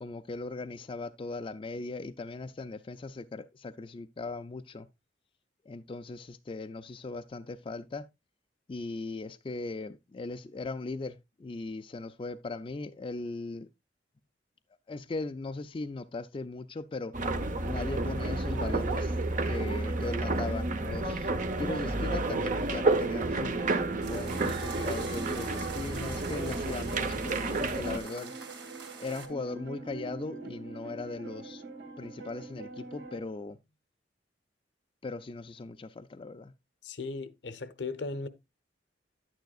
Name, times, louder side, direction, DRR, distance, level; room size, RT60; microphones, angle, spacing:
voice 1, 0.0-4.9 5.6-8.1 8.7-13.7 14.9-17.1 17.6-19.2 19.5-21.3 21.6-23.6 24.0-28.3 29.0-31.6 32.0-33.6 35.0-36.5, left 3 dB, 30° left, 0.4 m, -38 dB
sound 1, 17.1-28.0, right 2 dB, 45° right, 0.9 m, -30 dB
sound 2, 22.2-33.2, right 4 dB, 85° right, 1.9 m, -43 dB
sound 3, 24.0-29.3, right 5 dB, 70° right, 2.1 m, -43 dB
voice 2, 36.8-38.3, left 3 dB, 70° left, 0.8 m, -37 dB
10.5 x 9.2 x 2.4 m
head